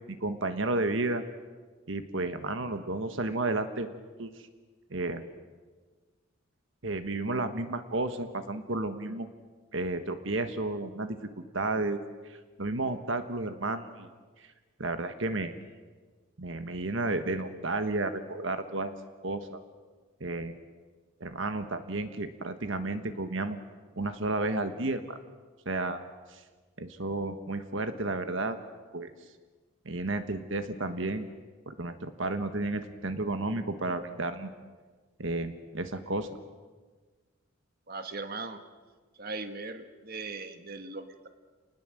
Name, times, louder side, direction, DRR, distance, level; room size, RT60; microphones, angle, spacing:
voice 1, 0.1-1.2 1.9-4.3 4.9-5.2 6.8-9.3 9.7-14.1 14.4-14.5 14.8-15.5 16.4-18.9 19.2-19.6 20.2-20.5 21.2-23.6 24.0-25.2 25.6-26.0 26.3-26.4 26.8-28.6 28.9-29.1 29.8-31.3 31.7-34.5 35.2-36.3, right 2 dB, 65° right, 9 dB, 1.4 m, -32 dB
voice 2, 37.9-38.6 39.2-41.3, right 3 dB, 45° right, 7 dB, 1.5 m, -39 dB
29.5 x 20.0 x 7.8 m, 1.4 s
head